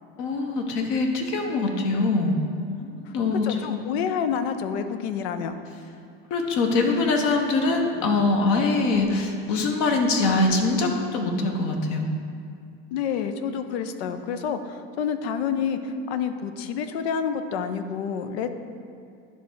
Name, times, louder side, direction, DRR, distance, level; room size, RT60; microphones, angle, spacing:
voice 1, 0.2-4.2 6.3-12.1, left 3 dB, 60° left, 3 dB, 1.3 m, -24 dB
voice 2, 3.4-5.6 12.9-18.5, left 7 dB, 75° left, 9 dB, 0.7 m, -28 dB
10.0 x 3.5 x 6.4 m, 2.4 s
supercardioid pair, 115°, 32 cm